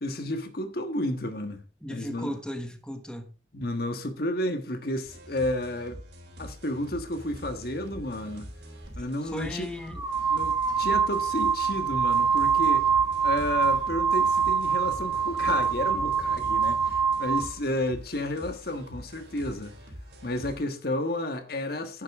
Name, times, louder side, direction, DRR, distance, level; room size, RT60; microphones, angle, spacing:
voice 1, 0.0-1.6 1.9-2.3 3.5-6.0 6.4-8.5 9.0-9.7 10.3-12.9 13.2-19.7 20.2-22.0, left 1 dB, 55° left, 1.4 m, -31 dB
voice 2, 1.8-3.3 9.2-10.0, left 1 dB, 5° left, 1.2 m, -36 dB
sound 1, 5.0-20.6, equal, 70° right, 3.8 m, -45 dB
sound 2, 8.8-9.0 9.8-17.5, right 6 dB, 15° right, 1.7 m, -25 dB
10.5 x 10.0 x 3.6 m
head